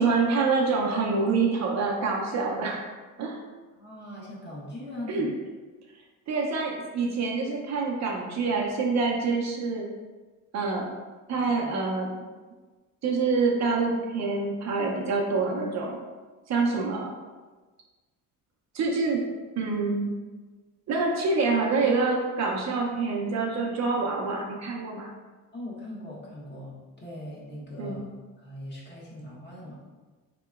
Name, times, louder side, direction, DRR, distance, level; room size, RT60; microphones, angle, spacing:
voice 1, 0.0-2.9 3.2-3.4 5.1-5.3 6.3-9.8 10.5-10.9 11.3-12.1 13.0-16.0 16.5-17.1 18.7-19.2 19.5-20.1 20.9-25.1 27.8-28.0, right 4 dB, 50° right, -1 dB, 0.6 m, -26 dB
voice 2, 3.7-5.3 11.4-11.8 25.5-28.0 28.4-29.8, left 1 dB, 30° left, -5 dB, 1.0 m, -40 dB
4.1 x 2.9 x 2.4 m, 1.3 s
cardioid pair, 115°, 35 cm